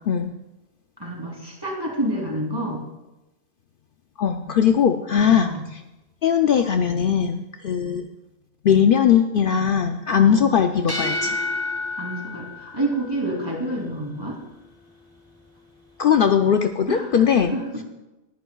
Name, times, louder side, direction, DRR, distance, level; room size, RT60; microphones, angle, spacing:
voice 1, 1.0-2.8 5.4-5.6 10.3-10.5 12.0-14.4 16.9-17.8, right 1 dB, 20° right, -2 dB, 3.1 m, -28 dB
voice 2, 4.2-5.5 6.2-8.1 8.6-11.4 16.0-17.6, left 8 dB, 60° left, 6 dB, 0.7 m, -19 dB
sound 1, 10.7-13.6, left 2 dB, 20° left, 2.9 m, -30 dB
20.5 x 10.0 x 2.3 m, 0.99 s
omnidirectional pair, 1.1 m